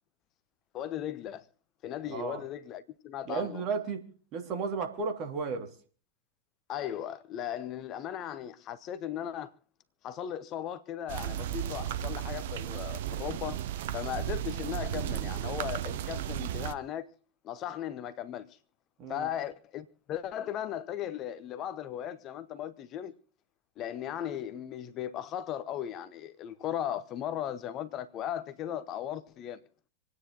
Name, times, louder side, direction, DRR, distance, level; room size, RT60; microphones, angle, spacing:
voice 1, 0.7-1.5 1.8-3.6 6.7-9.5 10.0-13.6 13.9-17.1 17.4-18.6 19.1-23.1 23.8-29.6, left 10 dB, 35° left, 1.0 m, -37 dB
voice 2, 2.1-2.4 3.2-5.7 19.0-19.3, right 5 dB, 40° right, 3.0 m, -34 dB
sound 1, 11.1-16.7, right 11 dB, 55° right, 0.9 m, -34 dB
27.0 x 9.6 x 4.0 m
figure-of-eight pair, 90°, 0 cm